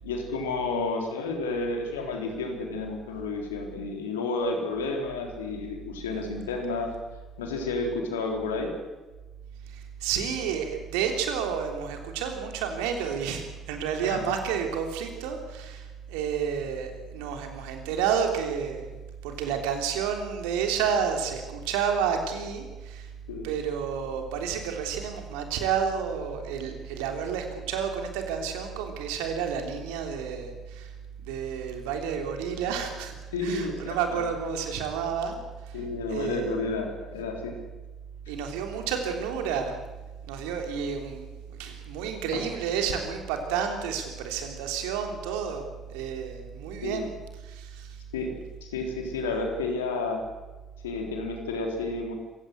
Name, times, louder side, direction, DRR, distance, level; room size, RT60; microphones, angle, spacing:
voice 1, 0.0-6.9 7.4-8.7 14.0-14.2 23.3-23.5 33.3-34.2 35.7-37.6 42.3-42.4 46.8-47.1 48.1-48.3 48.6-50.2 50.8-52.2, left 3 dB, 80° left, 3 dB, 3.8 m, -31 dB
voice 2, 9.7-23.1 23.4-30.9 31.2-33.1 33.4-35.4 35.6-35.8 36.1-36.5 38.3-39.7 40.3-47.2 47.5-48.0, right 7 dB, 70° right, 5 dB, 3.4 m, -30 dB
26.5 x 16.5 x 8.1 m, 1.2 s
figure-of-eight pair, 50°, 0 cm